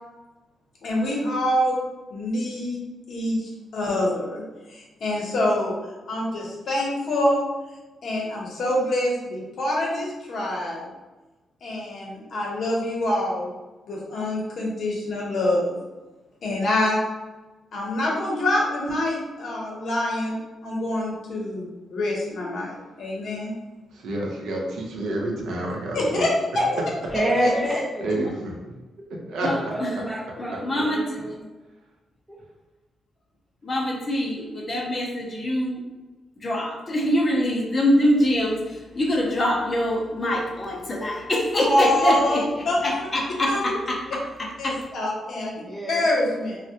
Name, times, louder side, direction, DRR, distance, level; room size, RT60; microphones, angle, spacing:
voice 1, 0.8-1.8 2.1-2.8 3.1-4.4 4.7-5.7 6.1-7.4 8.0-10.9 11.6-13.5 13.9-15.8 16.4-17.0 17.7-20.4 20.6-23.5 25.9-26.3 26.5-26.8 27.4-27.8 41.5-42.9 43.5-43.8 44.6-45.5 45.9-46.6, left 1 dB, 55° left, -3 dB, 0.7 m, -25 dB
voice 2, 23.9-26.3 28.0-28.5 29.3-29.5, right 1 dB, 90° right, -1 dB, 0.6 m, -29 dB
voice 3, 27.1-28.1 29.2-31.5 32.3-32.4 45.6-46.1, equal, 10° right, -5 dB, 0.7 m, -28 dB
voice 4, 29.4-30.1 30.4-31.0 33.6-35.8 36.4-44.8, left 1 dB, 25° left, -1 dB, 0.4 m, -24 dB
3.2 x 2.1 x 2.7 m, 1.1 s
wide cardioid pair, 175°, 0 cm